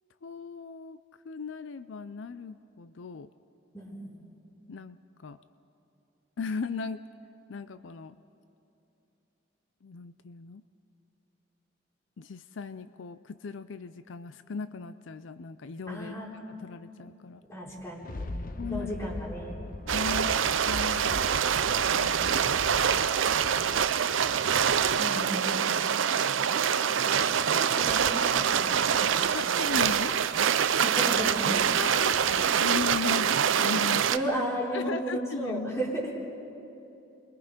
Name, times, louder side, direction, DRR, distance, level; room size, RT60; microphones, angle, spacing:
voice 1, 0.2-1.0 1.2-3.3 4.7-5.4 6.4-7.0 7.5-8.2 9.8-10.6 12.2-17.4 18.6-18.9 19.9-23.1 23.3-23.8 29.3-30.2 31.7-34.1 34.7-35.9, left 5 dB, 75° left, 13 dB, 0.5 m, -38 dB
voice 2, 3.7-4.1 15.9-16.3 17.5-19.6 25.0-25.5 26.9-29.3 30.8-31.7 34.1-36.1, right 1 dB, 15° left, -3 dB, 3.6 m, -34 dB
Thunder, 17.7-25.2 25.7-25.8, left 2 dB, 45° left, 0.7 m, -41 dB
sound 1, 19.9-34.2, right 8 dB, 80° right, 0.6 m, -25 dB
29.0 x 22.5 x 5.2 m, 2.9 s
head